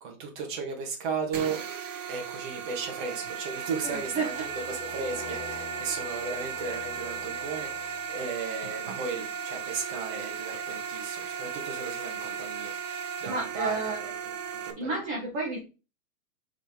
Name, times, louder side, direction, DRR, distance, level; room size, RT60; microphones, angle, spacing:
voice 1, 0.0-1.6 2.1-12.7 13.2-14.1 14.5-14.9, right 5 dB, 40° right, 1 dB, 1.8 m, -35 dB
sound 1, 1.3-14.7, right 7 dB, 65° right, 1.2 m, -36 dB
sound 2, 3.8-8.5, left 5 dB, 20° left, 0.9 m, -47 dB
voice 2, 3.8-4.4 13.3-14.0 14.8-15.6, right 3 dB, 20° right, -2 dB, 1.0 m, -31 dB
6.8 x 3.9 x 3.7 m, 0.32 s
hypercardioid pair, 170°, 41 cm